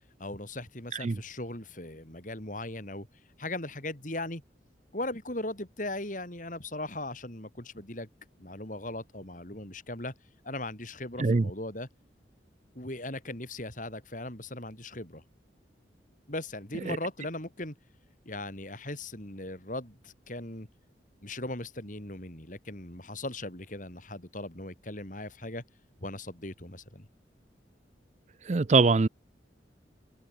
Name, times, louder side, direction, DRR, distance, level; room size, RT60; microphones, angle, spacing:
voice 1, 0.2-3.1 3.4-4.4 4.9-8.1 8.4-10.1 10.4-11.9 12.7-15.2 16.3-17.8 18.3-20.7 21.2-25.6 26.0-27.1, left 2 dB, 45° left, 5.8 m, -38 dB
voice 2, 11.2-11.5 16.9-17.0 28.5-29.1, right 4 dB, 40° right, 0.5 m, -23 dB
head